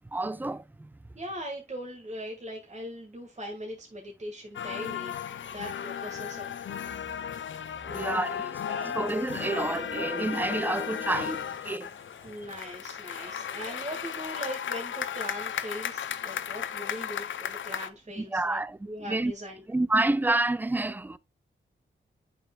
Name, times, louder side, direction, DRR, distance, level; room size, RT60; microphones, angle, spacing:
voice 1, 0.1-0.9 7.9-8.4 8.8-11.9 18.2-18.8 19.0-19.3 19.7-21.2, right 2 dB, 10° right, 0.4 m, -29 dB
voice 2, 1.1-5.2 5.5-6.6 7.8-8.5 12.2-18.6 18.9-19.7, equal, 35° right, 1.7 m, -40 dB
sound 1, 4.5-17.9, left 8 dB, 65° left, 0.6 m, -35 dB
Speech, 8.3-12.4 13.1-14.0, equal, 75° right, 3.3 m, -47 dB
8.7 x 5.2 x 2.3 m
cardioid pair, 55°, 21 cm